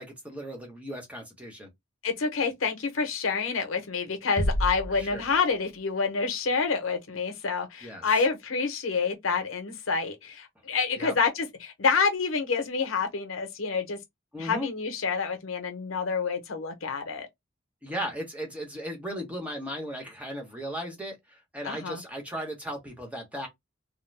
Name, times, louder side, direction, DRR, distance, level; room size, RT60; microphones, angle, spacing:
voice 1, 0.0-1.7 4.9-5.2 7.8-8.1 11.0-11.1 14.3-14.7 17.8-23.5, equal, 5° right, 0.9 m, -36 dB
voice 2, 2.0-14.0 14.4-17.3 21.6-22.0, left 5 dB, 85° left, 0.8 m, -28 dB
sound 1, 4.4-6.0, equal, 35° left, 0.5 m, -31 dB
2.5 x 2.0 x 3.1 m
head